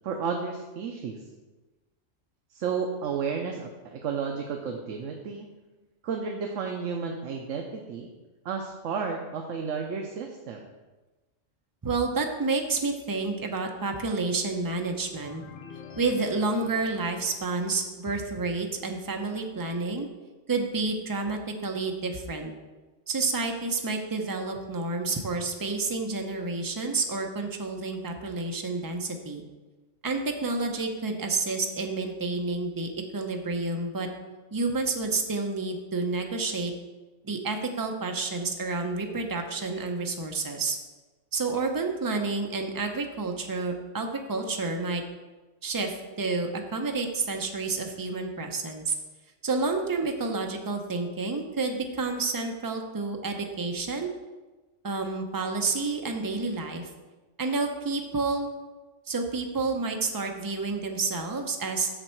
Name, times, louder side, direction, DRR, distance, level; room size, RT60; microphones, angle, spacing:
voice 1, 0.0-1.2 2.5-5.5 6.0-8.1 8.4-10.7, right 5 dB, 75° right, 3 dB, 1.0 m, -32 dB
voice 2, 11.8-15.4 15.9-20.1 20.5-22.5 23.1-29.4 30.0-34.1 34.5-36.7 37.2-40.8 41.3-45.0 45.6-48.9 49.4-54.1 54.8-56.9 57.4-58.5 59.1-61.9, right 3 dB, 25° right, 3 dB, 0.5 m, -29 dB
sound 1, 15.2-18.0, left 6 dB, 45° left, 1.0 m, -47 dB
6.8 x 6.4 x 4.5 m, 1.2 s
omnidirectional pair, 1.4 m